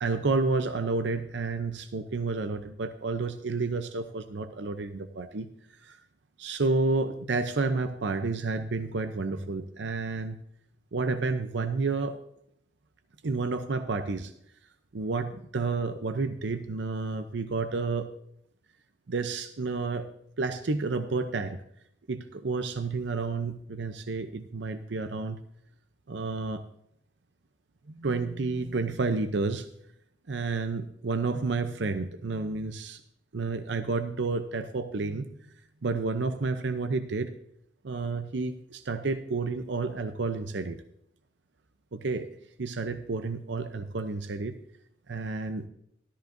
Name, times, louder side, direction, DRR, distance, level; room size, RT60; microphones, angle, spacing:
voice 1, 0.0-5.5 5.8-6.0 6.4-10.4 10.9-12.2 13.2-14.3 14.9-18.1 19.1-20.1 20.4-21.6 22.1-25.4 26.1-26.6 27.9-29.7 30.3-33.0 33.3-35.3 35.8-37.3 37.8-40.8 41.9-42.3 42.6-44.6 45.1-45.7, right 3 dB, 70° right, 9 dB, 0.6 m, -30 dB
13.5 x 13.0 x 2.6 m, 0.74 s
head